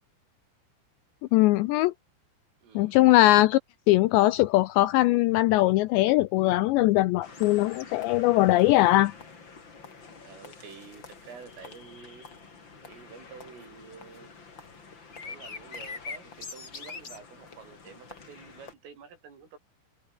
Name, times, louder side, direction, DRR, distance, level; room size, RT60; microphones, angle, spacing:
voice 1, 1.3-1.9 2.8-3.6 3.9-9.1, left 17 dB, 80° left, 2.6 m, -21 dB
voice 2, 2.6-3.0 10.2-12.3 12.8-14.3 15.0-19.6, right 6 dB, 80° right, 8.7 m, -49 dB
sound 1, 7.2-18.7, left 4 dB, 30° left, 3.1 m, -45 dB
omnidirectional pair, 5.7 m